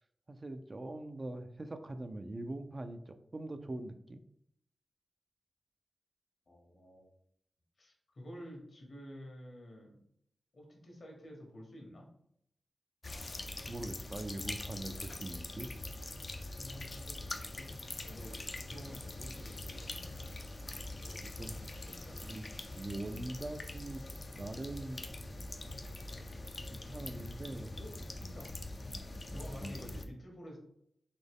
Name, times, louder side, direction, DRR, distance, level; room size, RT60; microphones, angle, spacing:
voice 1, 0.3-4.2 13.7-15.7 21.2-21.6 22.2-22.4 22.7-24.0 24.4-25.0 26.7-27.7 29.3-29.7, right 2 dB, 40° right, 8 dB, 0.4 m, -42 dB
voice 2, 6.5-7.1 7.8-10.0 10.5-12.1 16.5-20.2 20.7-21.5 21.8-22.2 27.8-27.9 28.2-28.5 29.3-30.6, equal, 65° left, 0 dB, 1.5 m, -51 dB
sound 1, 13.0-30.1, left 2 dB, 50° left, 0.5 m, -43 dB
4.1 x 2.9 x 3.6 m, 0.73 s
cardioid pair, 55°, 0 cm